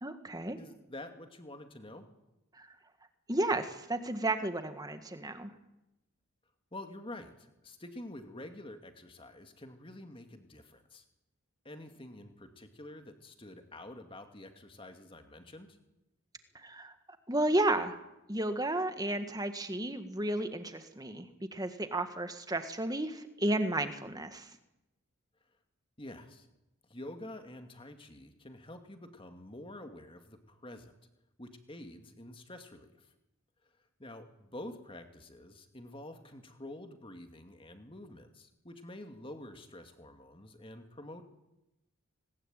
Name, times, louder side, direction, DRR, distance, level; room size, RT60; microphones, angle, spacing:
voice 1, 0.0-0.6 2.6-2.7 3.3-5.5 16.5-16.9 17.3-18.0 18.3-21.2 21.5-24.5, right 1 dB, 15° right, 8 dB, 1.7 m, -32 dB
voice 2, 0.5-2.0 6.7-11.0 11.6-15.8 26.0-26.5 26.9-30.9 31.4-33.1 34.0-41.2, left 1 dB, 25° left, 6 dB, 2.3 m, -48 dB
20.0 x 20.0 x 9.1 m, 0.92 s
head